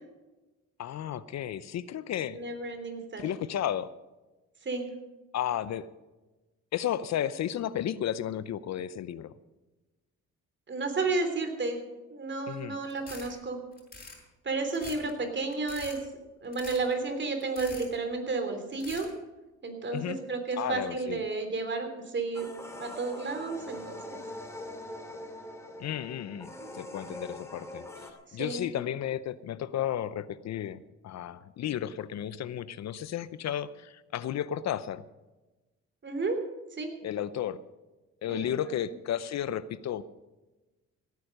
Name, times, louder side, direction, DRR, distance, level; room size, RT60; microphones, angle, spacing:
voice 1, 0.8-2.4 3.2-3.9 5.3-5.9 6.7-9.3 12.5-12.8 19.9-20.2 20.5-21.2 25.8-35.0 37.0-37.6 38.2-40.0, left 10 dB, 60° left, 16 dB, 0.7 m, -33 dB
voice 2, 2.3-3.3 4.6-4.9 10.7-11.8 12.1-13.6 14.4-16.0 16.4-19.1 19.6-21.9 22.1-24.0 26.6-26.7 28.4-28.7 36.0-36.4 36.8-36.9 38.3-38.5, right 3 dB, 40° right, 6 dB, 3.3 m, -32 dB
sound 1, 12.9-13.3 13.7-14.2 14.7-15.1 15.5-16.0 16.5-16.9 17.4-18.0 18.7-19.1, left 3 dB, 30° left, 5.4 m, -45 dB
sound 2, 22.3-28.1, left 1 dB, 10° left, 2.5 m, -43 dB
17.0 x 9.4 x 6.6 m, 1.1 s
cardioid pair, 90°, 30 cm